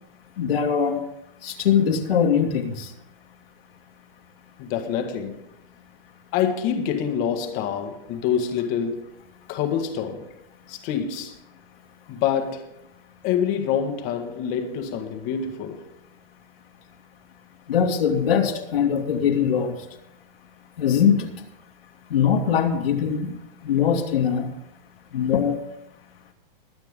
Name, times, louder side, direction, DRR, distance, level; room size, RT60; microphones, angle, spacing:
voice 1, 0.4-1.0 1.4-2.9 17.7-19.7 20.8-21.3 22.1-23.3 23.6-24.5 25.1-25.6, left 7 dB, 75° left, 2.5 m, -21 dB
voice 2, 4.6-5.3 6.3-9.1 9.5-10.3 10.7-11.3 12.1-12.7 13.2-15.8, left 8 dB, 30° left, 1.6 m, -26 dB
22.0 x 9.1 x 3.8 m
hypercardioid pair, 165°, 30 cm